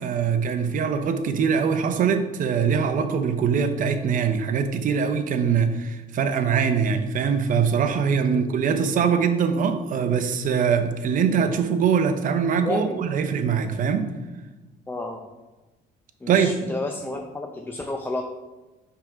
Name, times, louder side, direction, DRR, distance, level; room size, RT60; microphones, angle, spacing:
voice 1, 0.0-14.0 16.3-16.5, right 6 dB, 50° right, 8 dB, 0.7 m, -22 dB
voice 2, 12.6-13.1 14.9-15.3 16.2-18.2, left 2 dB, 10° left, 3 dB, 0.4 m, -31 dB
5.6 x 3.7 x 5.0 m, 1.1 s
cardioid pair, 110°, 17 cm